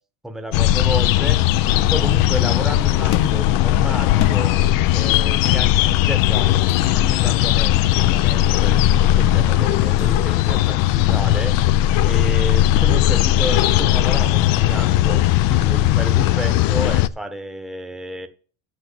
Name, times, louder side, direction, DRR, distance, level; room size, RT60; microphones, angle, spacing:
voice 1, 0.2-1.4 1.8-4.5 4.9-11.5 12.0-15.2 15.5-18.3, right 1 dB, ahead, 6 dB, 1.0 m, -31 dB
sound 1, 0.5-17.1, left 13 dB, 65° left, 0.5 m, -17 dB
sound 2, 3.1-7.0 10.0-10.2, left 10 dB, 50° left, 0.9 m, -30 dB
7.5 x 6.6 x 7.0 m, 0.41 s
cardioid pair, 130°, 38 cm